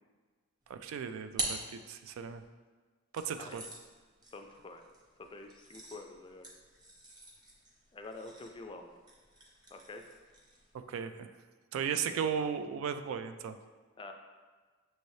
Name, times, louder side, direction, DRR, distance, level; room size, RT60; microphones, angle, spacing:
sound 1, 0.7-2.5 3.1-10.7, right 1 dB, 20° right, 0.7 m, -45 dB
voice 1, 0.7-2.4 3.1-3.6 10.9-11.3 11.7-13.6, right 7 dB, 90° right, 10 dB, 0.3 m, -36 dB
voice 2, 4.3-4.8 5.3-6.5 7.9-8.9 9.7-10.0 14.0-14.1, left 3 dB, 25° left, 5 dB, 0.3 m, -47 dB
6.2 x 3.2 x 2.7 m, 1.4 s
head